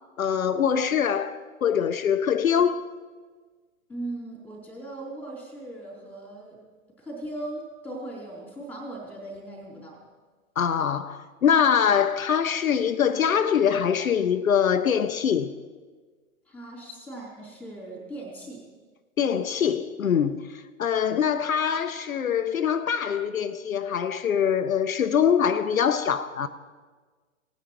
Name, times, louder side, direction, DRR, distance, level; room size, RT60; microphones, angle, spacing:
voice 1, 0.2-2.8 10.6-15.5 19.2-26.5, left 8 dB, 75° left, 0.6 m, -23 dB
voice 2, 3.9-6.6 7.0-10.0 16.5-18.6, right 1 dB, 5° left, 3.3 m, -38 dB
18.5 x 9.1 x 3.0 m
figure-of-eight pair, 110°, 42 cm